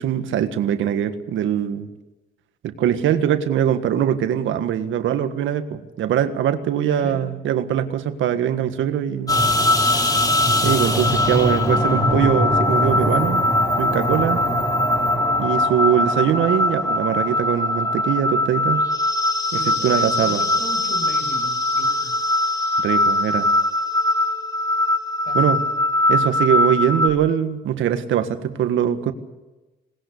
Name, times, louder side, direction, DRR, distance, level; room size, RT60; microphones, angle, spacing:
voice 1, 0.0-1.9 2.6-9.4 10.6-13.4 13.8-14.4 15.4-18.8 19.5-20.5 22.8-23.5 25.4-25.6 26.1-29.1, right 10 dB, 80° right, 10 dB, 1.6 m, -22 dB
voice 2, 6.8-7.2 11.7-11.9 19.5-22.1 25.3-25.6, left 1 dB, 50° left, 5 dB, 7.9 m, -37 dB
sound 1, 9.3-27.1, left 1 dB, 20° left, 4.4 m, -20 dB
21.0 x 19.5 x 8.4 m, 1.1 s
cardioid pair, 90°, 20 cm